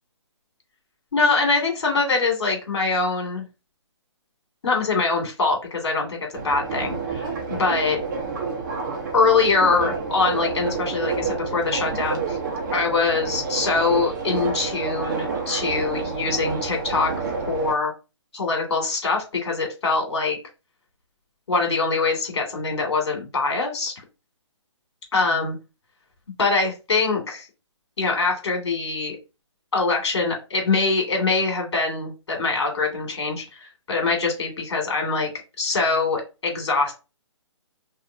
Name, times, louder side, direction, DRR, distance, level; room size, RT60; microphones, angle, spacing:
voice 1, 1.1-3.4 4.6-8.0 9.1-12.4 12.7-17.1 17.5-17.9 18.3-20.4 21.5-23.9 25.1-25.6 26.4-27.5 28.0-29.2 29.7-35.3 35.6-36.9, left 4 dB, 60° left, 2 dB, 2.5 m, -23 dB
Subway metro underground, 6.3-17.7, right 5 dB, 40° right, 1.3 m, -29 dB
5.6 x 3.0 x 2.8 m, 0.29 s
figure-of-eight pair, 140°, 16 cm